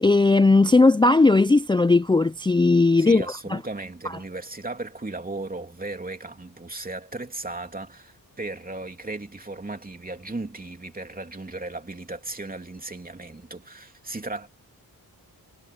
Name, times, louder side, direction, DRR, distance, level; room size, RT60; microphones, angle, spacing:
voice 1, 0.0-3.2 3.5-3.6, left 3 dB, 15° left, 0.4 m, -17 dB
voice 2, 3.0-14.5, right 2 dB, 25° right, 3.0 m, -36 dB
wide cardioid pair, 100°, 37 cm